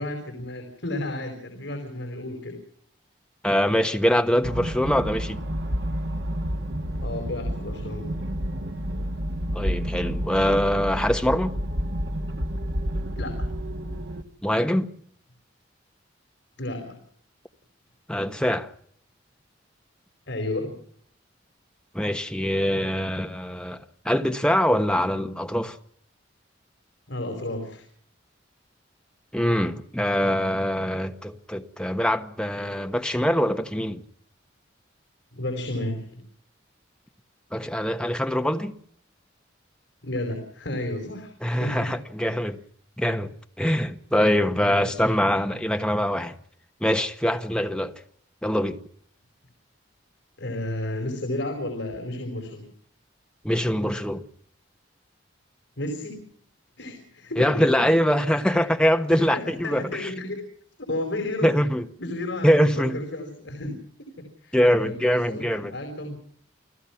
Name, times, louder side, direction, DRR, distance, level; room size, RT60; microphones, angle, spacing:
voice 1, 0.0-2.5 7.0-8.1 13.2-13.5 16.6-17.0 20.3-20.8 27.1-27.9 35.3-36.2 40.0-42.0 42.3-42.5 44.6-45.1 50.4-52.7 55.8-56.2 56.8-57.6 58.5-58.7 59.1-60.4 60.8-61.5 62.0-66.2, left 1 dB, 65° left, 4.7 m, -32 dB
voice 2, 3.4-5.4 9.5-11.5 14.4-14.9 18.1-18.7 21.9-25.8 29.3-34.0 37.5-38.8 41.4-42.6 43.0-46.3 46.8-47.9 48.4-48.8 53.4-54.3 57.4-60.1 61.4-61.9 62.4-63.0 64.5-65.8, equal, 5° left, 1.2 m, -23 dB
sound 1, 4.4-14.2, equal, 65° right, 1.6 m, -30 dB
29.0 x 17.5 x 5.9 m
head